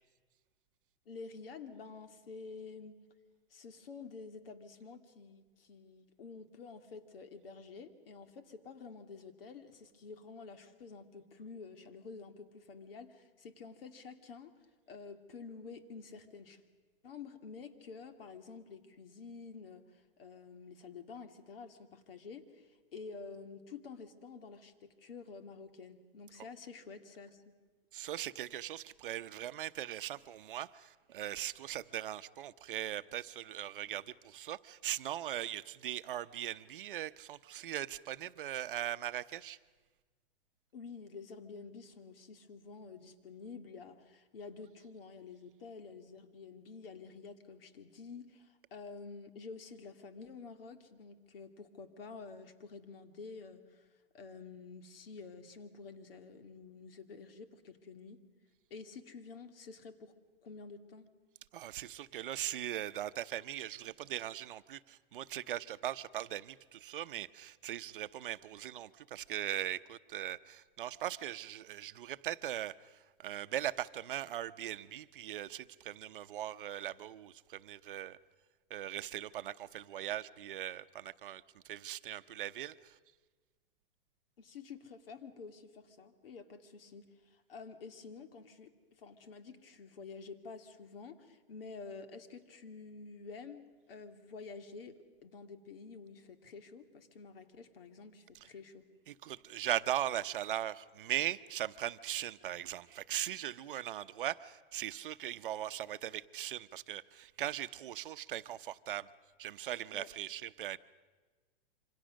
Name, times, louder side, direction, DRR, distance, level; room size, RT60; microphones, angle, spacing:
voice 1, 1.1-2.9 3.5-14.5 14.9-16.6 17.0-27.4 40.7-53.9 54.1-58.2 58.7-60.1 60.4-61.1 84.4-98.9 109.9-110.1, left 4 dB, 70° left, 8 dB, 2.5 m, -49 dB
voice 2, 27.9-39.6 61.5-78.2 78.7-83.0 99.1-109.1 109.4-110.8, right 12 dB, 60° right, 13 dB, 0.8 m, -39 dB
27.5 x 25.5 x 6.4 m, 1.3 s
supercardioid pair, 180°, 29 cm